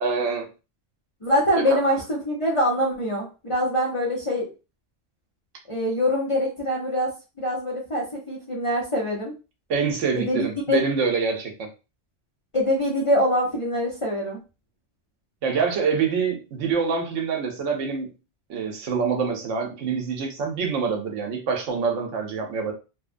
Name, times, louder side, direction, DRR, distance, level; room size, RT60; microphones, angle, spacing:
voice 1, 0.0-0.5 1.7-1.8 9.7-11.7 15.4-18.1 18.5-22.7, right 5 dB, 80° right, 2 dB, 1.0 m, -25 dB
voice 2, 1.2-4.5 5.7-7.1 7.4-9.3 10.1-10.8 12.5-14.4, left 1 dB, 35° left, -4 dB, 0.5 m, -24 dB
2.9 x 2.1 x 2.5 m, 0.30 s
omnidirectional pair, 1.3 m